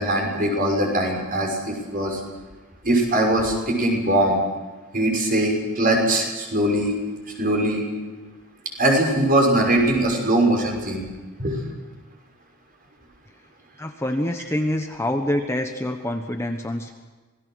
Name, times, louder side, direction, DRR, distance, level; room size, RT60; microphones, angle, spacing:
voice 1, 0.0-2.2 2.8-4.4 4.9-6.9 7.4-7.9 8.8-11.0 11.4-11.6, right 1 dB, 40° right, 0 dB, 6.1 m, -21 dB
voice 2, 13.8-16.9, left 1 dB, 10° left, 4 dB, 1.1 m, -26 dB
26.5 x 19.0 x 6.4 m, 1.3 s
head